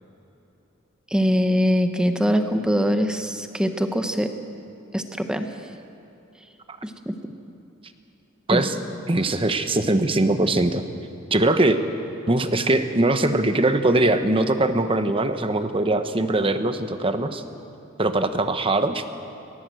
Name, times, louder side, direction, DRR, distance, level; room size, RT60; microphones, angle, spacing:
voice 1, 1.1-4.3 4.9-5.5 6.8-7.2 8.5-8.7, equal, 5° right, 6 dB, 1.0 m, -22 dB
voice 2, 9.1-10.8 11.3-11.8 12.3-17.4 18.0-19.0, right 2 dB, 25° right, 9 dB, 1.0 m, -21 dB
19.5 x 18.0 x 7.8 m, 2.9 s
head